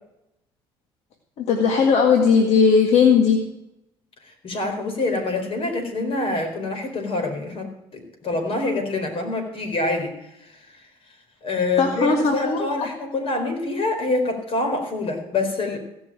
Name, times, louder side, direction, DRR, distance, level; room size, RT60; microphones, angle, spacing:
voice 1, 1.4-3.4 11.8-12.9, left 5 dB, 75° left, 2 dB, 1.9 m, -18 dB
voice 2, 4.2-10.9 11.4-15.8, left 2 dB, 55° left, 4 dB, 4.4 m, -26 dB
16.5 x 6.2 x 8.9 m, 0.85 s
supercardioid pair, 70°, 11 cm